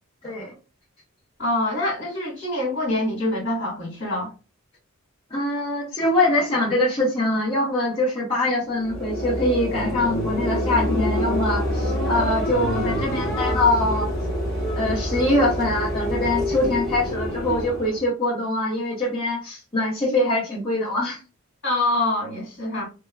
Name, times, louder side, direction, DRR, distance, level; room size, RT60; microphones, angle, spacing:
voice 1, 0.2-0.5 5.3-14.1 14.7-21.2, left 2 dB, 25° left, 1.1 m, -23 dB
voice 2, 1.4-4.3 12.6-12.8 21.6-22.9, left 1 dB, 60° left, 1.8 m, -25 dB
sound 1, 8.7-18.0, equal, ahead, 1.4 m, -26 dB
3.4 x 2.9 x 2.2 m
head